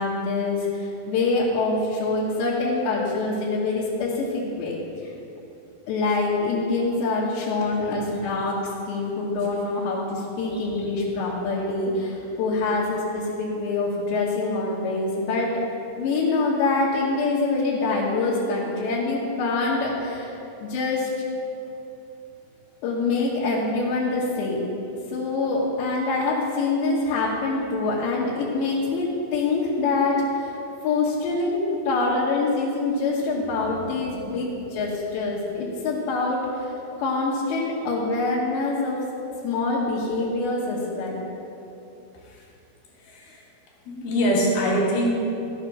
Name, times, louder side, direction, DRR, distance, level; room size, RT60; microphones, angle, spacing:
voice 1, 0.0-4.7 5.0-5.1 5.9-8.6 8.9-15.6 16.0-21.1 22.8-24.7 25.0-30.6 30.8-36.7 37.0-39.1 39.4-41.2, left 3 dB, 90° left, -7 dB, 3.5 m, -25 dB
voice 2, 43.9-45.1, equal, 65° left, -3 dB, 3.2 m, -23 dB
13.5 x 6.6 x 6.1 m, 2.8 s
omnidirectional pair, 4.9 m